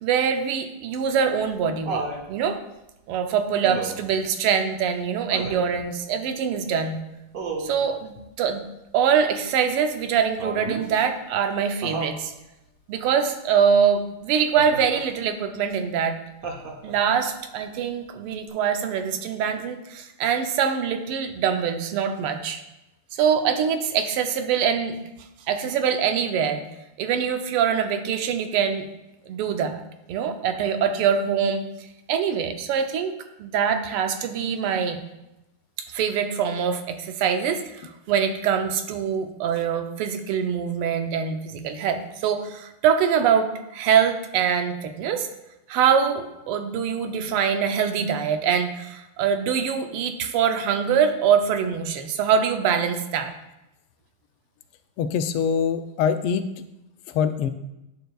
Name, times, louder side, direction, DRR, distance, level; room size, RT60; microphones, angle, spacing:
voice 1, 0.0-2.0 2.3-2.6 3.1-7.0 7.6-8.7 8.9-12.3 12.9-16.2 16.8-22.6 23.1-25.0 25.5-26.6 27.0-28.8 29.3-29.8 30.1-31.6 32.1-33.1 33.4-35.0 35.9-45.3 45.7-53.3, right 7 dB, 85° right, 6 dB, 1.6 m, -24 dB
Laughter, 0.9-2.2 3.6-4.1 5.3-5.7 7.3-7.9 10.4-10.9 11.8-12.2 14.5-15.0 16.4-17.1 18.5-18.6, right 3 dB, 55° right, 1.0 m, -32 dB
voice 2, 55.0-56.5 57.1-57.5, left 7 dB, 90° left, 10 dB, 1.5 m, -23 dB
10.5 x 6.7 x 2.3 m, 0.92 s
omnidirectional pair, 2.4 m